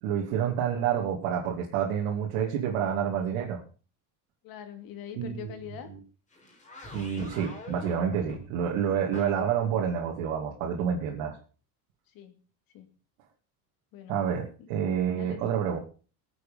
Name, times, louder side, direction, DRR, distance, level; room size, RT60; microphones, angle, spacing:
voice 1, 0.0-3.6 5.2-5.4 6.9-11.4 14.1-15.8, right 8 dB, 85° right, -1 dB, 2.7 m, -28 dB
voice 2, 4.4-5.9 12.1-12.4 12.7-12.9 13.9-14.2 15.1-15.5, left 9 dB, 55° left, 7 dB, 3.0 m, -43 dB
sound 1, 6.3-9.5, left 1 dB, 20° left, 4.4 m, -44 dB
20.0 x 8.1 x 5.3 m, 0.38 s
cardioid pair, 135°, 40 cm